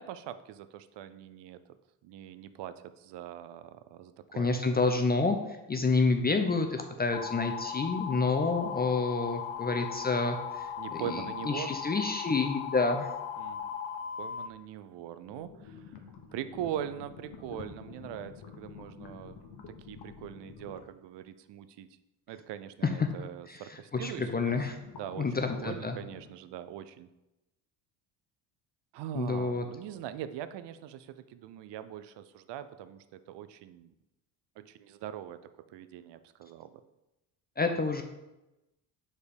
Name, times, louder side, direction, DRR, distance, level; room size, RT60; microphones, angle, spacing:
voice 1, 0.0-1.6 2.0-4.5 10.8-11.7 13.4-13.7 14.2-16.0 16.3-19.4 19.7-21.9 22.3-24.6 25.0-25.3 25.6-27.1 28.9-33.9 34.6-35.4 35.7-36.7, right 11 dB, 60° right, 12 dB, 0.6 m, -42 dB
voice 2, 4.4-5.4 5.7-10.7 11.1-13.1 22.8-23.1 23.5-23.6 23.9-24.7 25.2-26.0 29.1-29.6 37.6-38.0, left 4 dB, 20° left, 6 dB, 0.6 m, -28 dB
sound 1, 7.1-14.5, left 8 dB, 75° left, 0.8 m, -38 dB
sound 2, 15.2-21.0 23.9-26.3, left 6 dB, 55° left, 1.2 m, -49 dB
4.8 x 4.4 x 5.2 m, 0.97 s
supercardioid pair, 65°, 48 cm